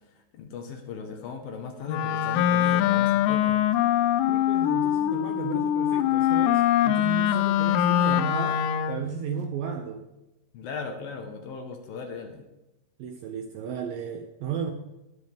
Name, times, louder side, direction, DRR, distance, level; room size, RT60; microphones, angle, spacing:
voice 1, 0.3-3.7 10.5-12.4, left 5 dB, 70° left, 5 dB, 2.5 m, -37 dB
Wind instrument woodwind instrument, 1.9-9.1, left 11 dB, 85° left, 2.8 m, -23 dB
voice 2, 4.3-10.1 13.0-14.7, right 6 dB, 75° right, 5 dB, 2.1 m, -34 dB
20.0 x 7.9 x 3.4 m, 0.95 s
omnidirectional pair, 4.9 m